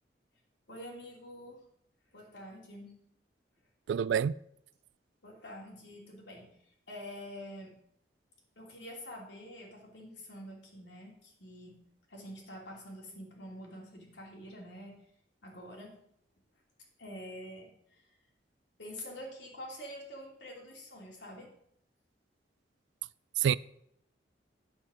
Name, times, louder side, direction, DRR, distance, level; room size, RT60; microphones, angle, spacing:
voice 1, 0.7-1.6 2.1-3.0 5.2-7.7 8.6-11.8 12.1-15.0 15.4-16.0 17.0-18.1 18.8-21.5, equal, 85° left, 3.1 m, -47 dB
voice 2, 3.9-4.3 23.4-23.6, right 8 dB, 80° right, 0.3 m, -26 dB
8.9 x 7.8 x 5.0 m
head